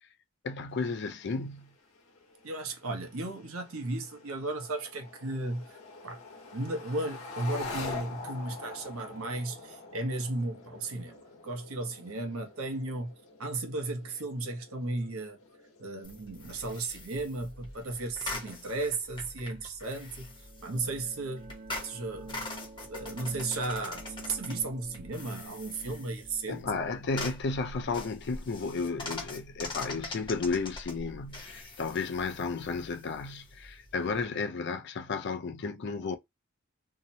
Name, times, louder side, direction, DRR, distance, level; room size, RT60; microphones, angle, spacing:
voice 1, 0.4-1.7 26.5-36.2, left 4 dB, 55° left, 0.4 m, -33 dB
sound 1, 0.7-19.5, left 3 dB, 75° left, 1.0 m, -47 dB
voice 2, 2.4-6.2 6.5-13.1 13.4-15.4 15.8-20.3 20.6-21.5 21.8-22.4 22.9-26.6, right 2 dB, 85° right, 0.8 m, -35 dB
sound 2, 16.0-34.2, left 2 dB, 25° left, 0.7 m, -43 dB
sound 3, 20.1-28.7, right 3 dB, 35° right, 0.5 m, -49 dB
2.8 x 2.0 x 2.7 m
head